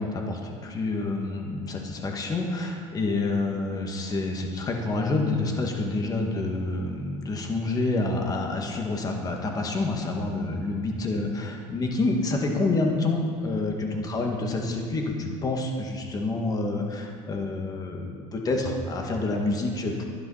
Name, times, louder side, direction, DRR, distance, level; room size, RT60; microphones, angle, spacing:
voice 1, 0.0-20.0, left 2 dB, 30° left, 2 dB, 1.9 m, -28 dB
12.0 x 11.5 x 5.7 m, 2.1 s
cardioid pair, 115°, 12 cm